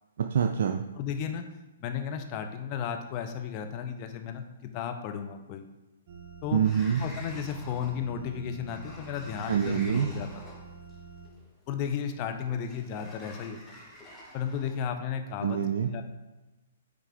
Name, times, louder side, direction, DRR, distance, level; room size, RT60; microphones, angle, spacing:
voice 1, 0.2-0.8 6.5-7.0 9.5-10.1 15.4-15.9, right 8 dB, 65° right, 5 dB, 0.4 m, -26 dB
voice 2, 1.0-1.4 1.8-5.6 6.4-6.6 7.0-10.5 11.7-13.8 14.3-16.1, left 7 dB, 35° left, 6 dB, 0.7 m, -34 dB
sound 1, 6.1-11.3, right 5 dB, 50° right, 0.8 m, -47 dB
Sliding door, 6.6-14.8, left 1 dB, 10° left, 1.2 m, -50 dB
9.2 x 3.5 x 3.5 m, 1.1 s
figure-of-eight pair, 125°, 0 cm